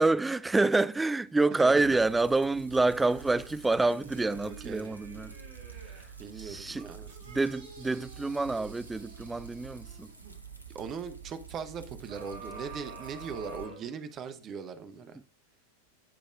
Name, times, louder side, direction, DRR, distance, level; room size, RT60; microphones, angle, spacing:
voice 1, 0.0-5.3 6.4-6.9 7.3-10.1, right 3 dB, 10° right, 0.3 m, -27 dB
voice 2, 1.5-2.1 4.4-5.0 5.7-7.1 10.7-15.2, right 6 dB, 30° right, 0.9 m, -40 dB
sound 1, 1.8-13.7, right 7 dB, 85° right, 1.0 m, -48 dB
sound 2, 3.0-6.2 6.7-10.4 12.1-14.4 14.9-15.0, right 3 dB, 55° right, 2.3 m, -49 dB
15.0 x 5.2 x 2.4 m
figure-of-eight pair, 90°, 0 cm